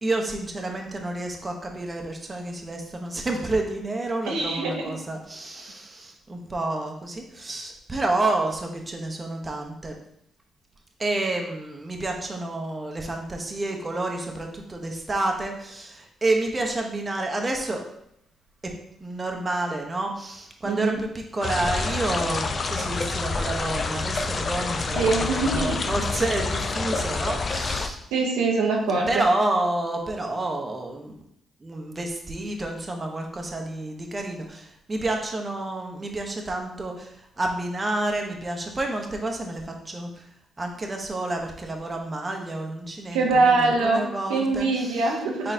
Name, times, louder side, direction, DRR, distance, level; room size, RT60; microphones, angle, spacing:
voice 1, 0.0-10.0 11.0-17.8 18.6-18.7 19.0-28.0 29.1-31.1 31.6-40.1 40.6-45.1 45.4-45.5, right 2 dB, 30° right, 2 dB, 0.8 m, -29 dB
voice 2, 4.3-5.0 20.6-21.0 24.9-25.8 28.1-29.3 43.1-45.5, right 3 dB, 85° right, -1 dB, 0.6 m, -23 dB
sound 1, 21.4-27.9, left 4 dB, 50° left, 0.4 m, -28 dB
4.0 x 3.7 x 2.7 m, 0.75 s
supercardioid pair, 50°, 0 cm